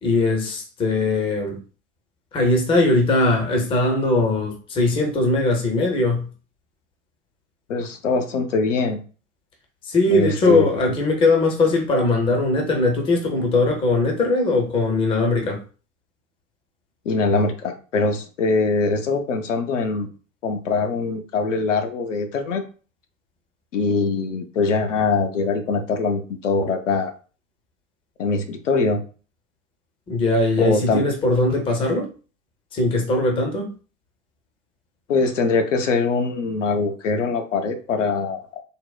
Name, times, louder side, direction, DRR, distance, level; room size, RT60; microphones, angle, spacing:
voice 1, 0.0-1.6 2.3-6.3 9.8-15.6 30.1-32.1 32.7-33.7, left 2 dB, 15° left, 0.5 m, -20 dB
voice 2, 7.7-9.0 10.1-10.7 17.1-20.1 20.4-22.6 23.7-27.1 28.2-29.0 30.6-31.0 35.1-38.6, left 4 dB, 65° left, 0.6 m, -22 dB
3.5 x 2.0 x 2.3 m
figure-of-eight pair, 85°, 40 cm